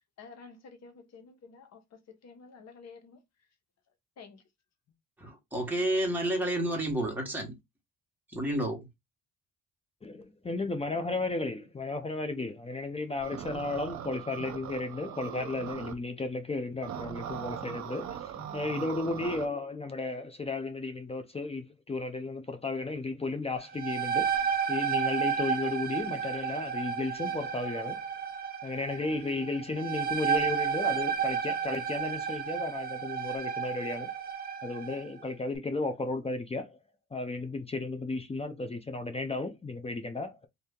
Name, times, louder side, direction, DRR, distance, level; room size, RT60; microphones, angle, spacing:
voice 1, 0.2-3.2 4.2-4.4, left 5 dB, 60° left, 1.0 m, -51 dB
voice 2, 5.2-7.6 8.3-8.9, right 1 dB, 5° right, 1.4 m, -30 dB
voice 3, 10.0-24.4 24.7-28.0 28.6-34.1 34.6-36.8 37.1-40.5, left 3 dB, 20° left, 0.6 m, -34 dB
sound 1, 13.2-15.9 16.8-19.4, right 9 dB, 70° right, 0.7 m, -40 dB
sound 2, 23.6-35.1, right 7 dB, 30° right, 0.8 m, -32 dB
2.7 x 2.7 x 3.6 m
cardioid pair, 90°, 30 cm